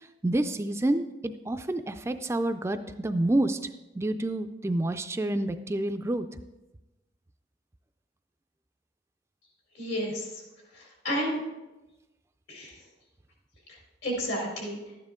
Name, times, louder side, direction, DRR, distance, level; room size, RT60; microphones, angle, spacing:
voice 1, 0.2-3.6 4.0-6.3, right 1 dB, 15° right, 9 dB, 0.3 m, -28 dB
voice 2, 9.8-10.4 10.7-11.4 12.5-12.8 14.0-14.8, equal, 80° left, -1 dB, 4.0 m, -31 dB
12.0 x 9.6 x 3.7 m, 1.0 s
head